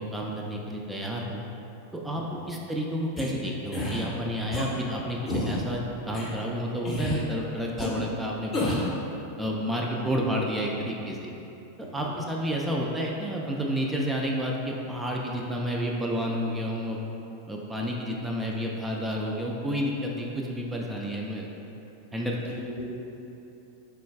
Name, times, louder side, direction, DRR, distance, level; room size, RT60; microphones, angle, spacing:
voice 1, 0.0-1.4 1.9-8.7 9.4-11.3 11.9-17.0 17.5-21.4 22.1-22.6, equal, 10° right, -2 dB, 0.3 m, -30 dB
voice 2, 2.1-2.5 10.0-10.1 22.2-22.8, left 2 dB, 60° left, -3 dB, 0.6 m, -42 dB
sound 1, 3.2-3.3 3.7-4.0 4.5-4.7 5.3-5.6 6.1-6.2 6.8-7.2 7.8-7.9 8.5-8.9, left 1 dB, 20° left, 0.7 m, -29 dB
3.8 x 2.2 x 3.3 m, 2.9 s
figure-of-eight pair, 90°, 0 cm